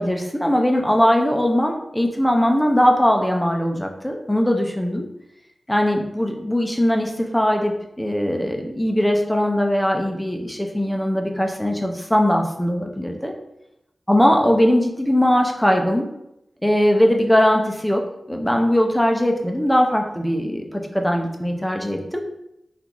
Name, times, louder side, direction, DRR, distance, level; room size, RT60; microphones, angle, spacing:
voice 1, 0.0-5.1 5.7-13.3 14.1-16.1 16.6-22.2, equal, 5° left, 2 dB, 0.4 m, -20 dB
3.7 x 2.4 x 2.9 m, 0.85 s
wide cardioid pair, 90°, 0 cm